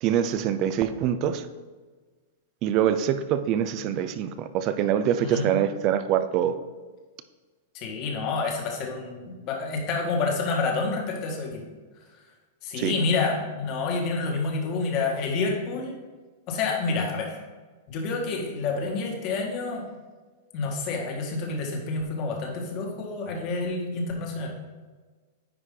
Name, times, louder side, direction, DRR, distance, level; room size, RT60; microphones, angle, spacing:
voice 1, 0.0-1.4 2.6-6.5 12.8-12.9, right 9 dB, 35° right, 11 dB, 0.5 m, -24 dB
voice 2, 5.2-5.5 7.7-11.6 12.6-15.9 16.5-17.4 17.9-19.8 20.5-24.5, left 3 dB, 40° left, 1 dB, 1.7 m, -28 dB
9.8 x 4.9 x 3.8 m, 1.4 s
supercardioid pair, 150°, 0 cm